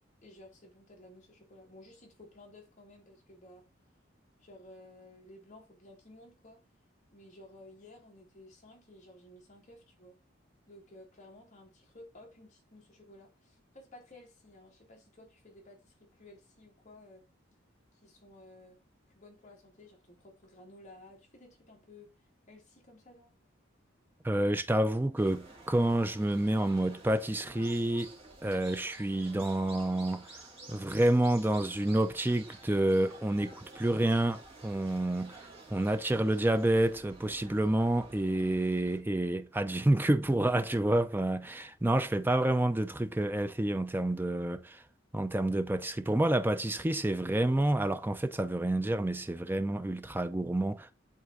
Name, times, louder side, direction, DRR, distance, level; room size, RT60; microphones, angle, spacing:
voice 1, 0.2-3.7 4.4-6.6 7.1-10.2 10.7-17.3 17.9-18.8 19.1-22.2 22.5-23.3, left 1 dB, 40° left, 2.1 m, -55 dB
voice 2, 24.2-44.8 45.1-50.9, right 1 dB, 10° right, 0.5 m, -29 dB
sound 1, 25.2-39.0, right 2 dB, 30° right, 1.8 m, -52 dB
11.0 x 3.8 x 2.4 m
head